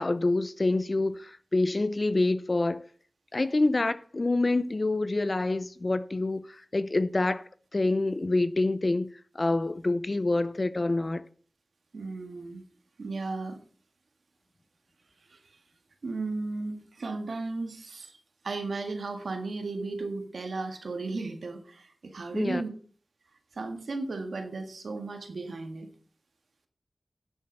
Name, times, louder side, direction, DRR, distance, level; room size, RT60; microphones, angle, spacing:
voice 1, 0.0-2.8 3.3-7.4 7.7-11.2 22.3-22.6, left 2 dB, 45° left, 0.6 m, -27 dB
voice 2, 11.9-12.6 13.0-13.6 15.3-15.4 16.0-18.2 18.4-22.7 23.5-25.9, right 3 dB, 80° right, 1.8 m, -35 dB
10.0 x 7.5 x 5.4 m
cardioid pair, 45°, 0 cm